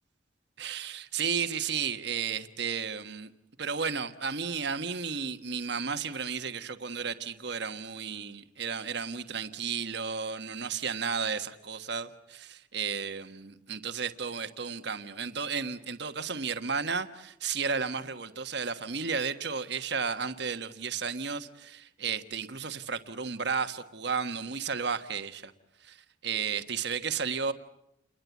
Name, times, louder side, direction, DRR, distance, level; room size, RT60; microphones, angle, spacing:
voice 1, 0.6-3.3 3.6-25.5 25.8-26.0 26.2-27.5, right 6 dB, 55° right, 1.3 m, -33 dB
30.0 x 22.0 x 8.3 m
head